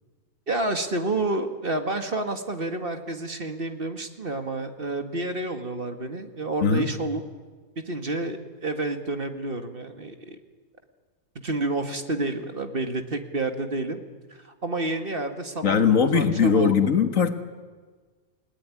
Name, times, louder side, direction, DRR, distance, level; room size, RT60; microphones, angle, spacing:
voice 1, 0.5-7.2 7.8-10.4 11.4-14.0 14.3-16.7, right 2 dB, 40° right, 7 dB, 2.0 m, -29 dB
voice 2, 15.6-17.3, left 6 dB, 65° left, 8 dB, 1.9 m, -20 dB
29.5 x 19.5 x 9.8 m, 1.4 s
omnidirectional pair, 1.5 m